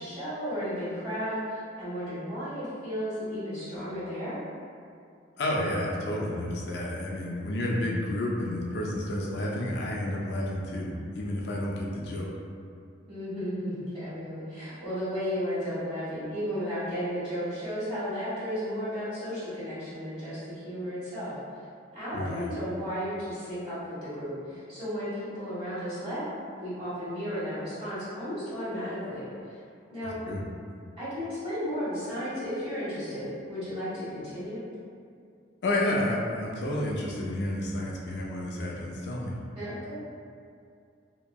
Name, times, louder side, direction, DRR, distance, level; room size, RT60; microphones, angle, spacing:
voice 1, 0.0-4.4 11.7-11.8 13.1-21.4 21.9-26.3 26.6-29.6 29.9-30.2 31.0-34.6 39.5-40.1, equal, 30° right, -13 dB, 1.3 m, -34 dB
voice 2, 5.4-12.3 22.1-22.4 30.2-30.4 35.6-39.3, left 1 dB, 55° left, -3 dB, 0.3 m, -30 dB
2.9 x 2.5 x 2.2 m, 2.4 s
head